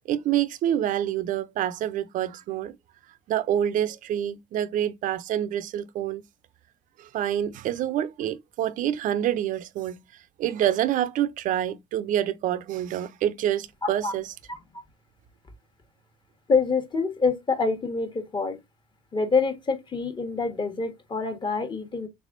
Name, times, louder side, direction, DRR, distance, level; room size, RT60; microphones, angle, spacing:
voice 1, 0.1-2.8 3.3-6.2 7.0-10.0 10.4-14.3, right 11 dB, 60° right, 0.5 m, -27 dB
voice 2, 16.5-18.6 19.1-22.1, left 4 dB, 30° left, 1.2 m, -26 dB
3.4 x 3.3 x 2.5 m
supercardioid pair, 85°, 15 cm